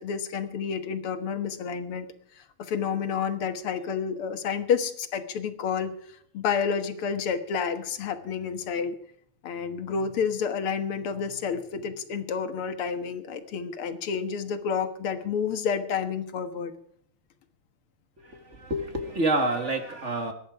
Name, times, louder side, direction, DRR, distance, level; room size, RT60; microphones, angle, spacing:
voice 1, 0.0-2.1 2.6-5.9 6.3-9.0 9.4-16.7, left 6 dB, 85° left, 9 dB, 2.3 m, -29 dB
voice 2, 18.2-20.3, right 2 dB, 35° right, 6 dB, 2.0 m, -28 dB
22.0 x 11.0 x 4.9 m, 0.64 s
omnidirectional pair, 2.4 m